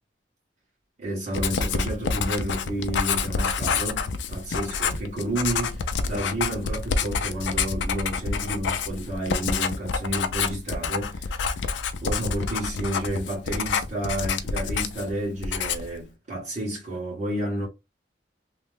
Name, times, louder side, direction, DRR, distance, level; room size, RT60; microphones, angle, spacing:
voice 1, 1.0-11.6 12.0-17.7, right 1 dB, 40° right, 1.5 m, -31 dB
Writing, 1.3-15.1 15.4-16.0, left 5 dB, 80° left, 0.4 m, -28 dB
3.1 x 2.2 x 3.2 m
head